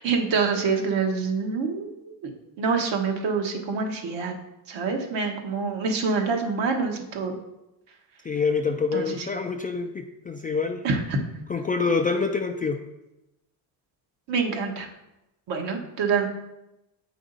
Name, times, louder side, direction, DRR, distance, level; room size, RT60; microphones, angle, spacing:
voice 1, 0.0-2.1 2.6-4.3 4.7-7.4 8.9-9.3 10.8-11.2 14.3-14.9 15.5-16.3, right 4 dB, 65° right, 3 dB, 1.4 m, -26 dB
voice 2, 8.2-10.9 11.5-12.8, left 4 dB, 20° left, 3 dB, 0.3 m, -26 dB
8.0 x 5.0 x 3.9 m, 0.93 s
cardioid pair, 95°, 47 cm